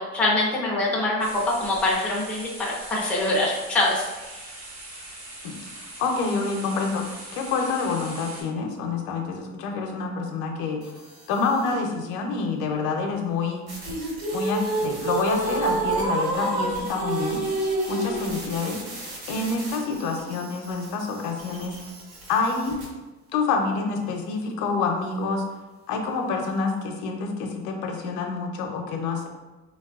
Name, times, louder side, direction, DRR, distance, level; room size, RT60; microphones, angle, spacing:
voice 1, 0.0-4.4, left 2 dB, 5° left, -4 dB, 0.3 m, -24 dB
sound 1, 1.2-8.4, right 1 dB, 65° right, 1.0 m, -41 dB
voice 2, 5.4-10.9 11.3-13.6 14.3-17.4 17.9-18.8 19.3-21.7 22.3-22.7 23.3-25.4 25.9-29.3, left 4 dB, 70° left, 3 dB, 0.6 m, -27 dB
sound 2, 10.8-11.9 13.7-22.9, right 1 dB, 90° right, 1.1 m, -42 dB
sound 3, 13.8-18.4, right 2 dB, 50° right, 1.1 m, -27 dB
4.0 x 2.3 x 2.3 m, 1.2 s
cardioid pair, 170°, 31 cm